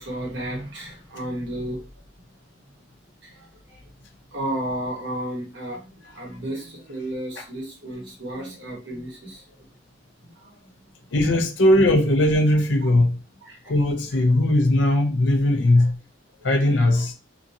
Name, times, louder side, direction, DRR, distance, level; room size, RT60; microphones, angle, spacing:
voice 1, 0.0-1.9 3.2-3.8 4.3-9.6 10.2-10.9 13.4-13.8 15.7-15.9 16.4-17.1, right 1 dB, 75° right, 1.1 m, -33 dB
voice 2, 11.1-13.2 13.7-15.9 16.4-17.1, left 1 dB, 70° left, 0.6 m, -19 dB
2.9 x 2.5 x 2.6 m
head